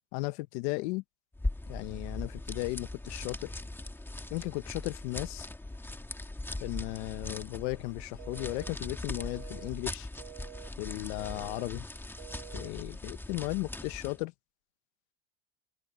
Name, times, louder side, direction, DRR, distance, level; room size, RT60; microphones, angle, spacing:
voice 1, 0.1-1.0 1.7-3.5 4.3-5.5 6.6-10.1 10.8-11.8 12.5-14.3, left 23 dB, 80° left, 1.0 m, -35 dB
sound 1, 1.3-14.2, left 2 dB, 5° left, 2.1 m, -40 dB
sound 2, 8.2-8.7 9.2-9.7 10.2-10.7 11.2-11.7 12.2-12.7, right 25 dB, 85° right, 4.7 m, -48 dB
open air
cardioid pair, 135°, 34 cm